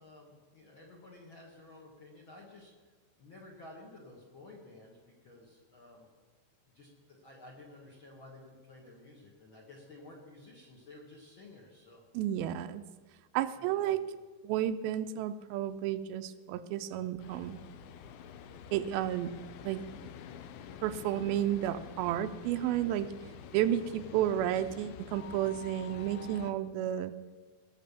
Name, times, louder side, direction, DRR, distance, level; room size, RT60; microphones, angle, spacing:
voice 1, 0.0-6.1 6.7-12.0 13.6-14.0, left 2 dB, 50° left, -1 dB, 1.6 m, -53 dB
voice 2, 12.1-12.8 13.3-14.0 14.4-17.6 18.7-19.3 19.7-19.8 20.8-23.1 23.5-27.1, right 11 dB, 85° right, 11 dB, 2.4 m, -32 dB
sound 1, 17.2-26.5, left 8 dB, 85° left, 2.6 m, -48 dB
19.0 x 6.7 x 6.8 m, 1.4 s
omnidirectional pair, 4.3 m